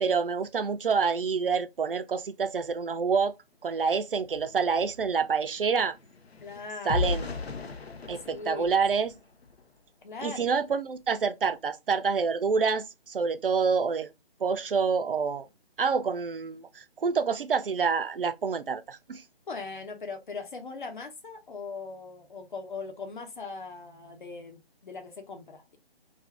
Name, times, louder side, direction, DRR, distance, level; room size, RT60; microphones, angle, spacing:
voice 1, 0.0-3.3 3.6-5.9 6.9-7.3 8.1-9.1 10.2-14.1 14.4-15.5 15.8-19.2, right 5 dB, 60° right, 0.5 m, -27 dB
sound 1, 4.0-4.1 4.3-9.8 10.3-10.5 10.9-11.1, left 4 dB, 80° left, 0.7 m, -37 dB
voice 2, 6.4-7.0 8.2-8.6 10.0-10.5 19.5-25.8, left 4 dB, 50° left, 0.9 m, -40 dB
2.6 x 2.4 x 3.2 m
figure-of-eight pair, 155°, 30 cm